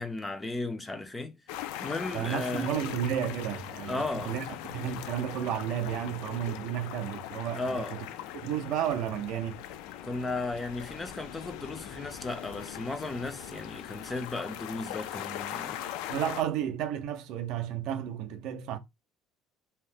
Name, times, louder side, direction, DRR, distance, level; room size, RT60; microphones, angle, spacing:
voice 1, 0.0-2.7 3.9-4.3 7.6-7.9 10.0-15.8, left 2 dB, 10° left, 0.3 m, -35 dB
sound 1, 1.5-16.4, left 12 dB, 90° left, 0.3 m, -40 dB
sound 2, 1.5-16.0 16.4-16.5, left 5 dB, 50° left, 0.7 m, -56 dB
voice 2, 2.1-8.1 8.3-9.6 16.1-18.8, right 10 dB, 60° right, 0.4 m, -32 dB
2.7 x 2.0 x 3.3 m
cardioid pair, 170°, 0 cm